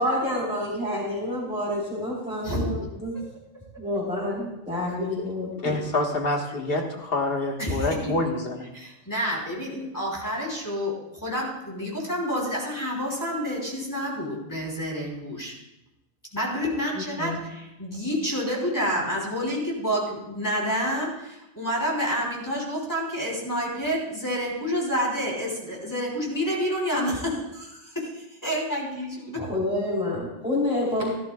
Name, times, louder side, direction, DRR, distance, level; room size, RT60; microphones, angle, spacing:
voice 1, 0.0-3.1 3.8-5.8 6.5-6.8 16.9-17.4 29.4-31.1, left 1 dB, 5° right, -9 dB, 3.7 m, -28 dB
voice 2, 5.6-8.7, left 2 dB, 50° left, 2 dB, 1.7 m, -26 dB
voice 3, 7.6-8.2 8.7-15.5 16.3-29.4, equal, 15° left, -4 dB, 3.4 m, -29 dB
16.5 x 13.5 x 2.3 m, 0.90 s
omnidirectional pair, 1.2 m